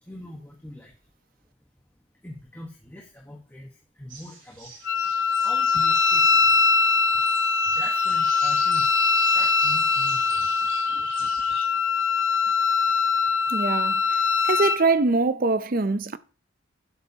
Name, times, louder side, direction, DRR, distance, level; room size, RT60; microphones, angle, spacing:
voice 1, 0.0-1.1 2.1-4.7 5.4-6.5 7.1-7.2 7.6-11.3, left 1 dB, 10° left, 1.3 m, -43 dB
sound 1, 4.1-11.6, right 3 dB, 70° right, 5.6 m, -42 dB
Wind instrument woodwind instrument, 4.9-14.8, left 4 dB, 65° left, 0.8 m, -22 dB
voice 2, 13.5-16.2, right 3 dB, 45° right, 0.5 m, -24 dB
11.5 x 11.0 x 2.9 m
head